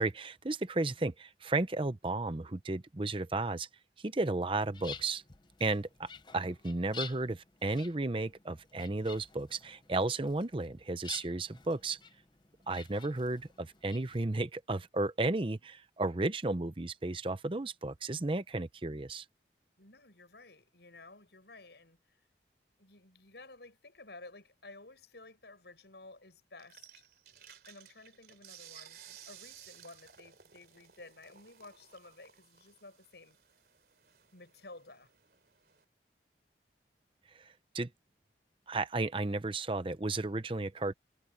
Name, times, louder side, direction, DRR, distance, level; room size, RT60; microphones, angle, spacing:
voice 1, 0.0-3.7 4.0-5.2 5.6-6.1 6.3-12.0 12.7-19.2 37.4-37.5 37.7-37.9 38.7-40.9, right 2 dB, 30° right, 0.7 m, -33 dB
sound 1, 4.4-14.2, left 6 dB, 25° left, 0.7 m, -50 dB
voice 2, 19.8-22.2 22.8-27.0 27.7-33.4 34.3-35.1, left 2 dB, 75° left, 5.8 m, -54 dB
sound 2, 26.6-35.8, right 10 dB, 60° right, 3.2 m, -57 dB
head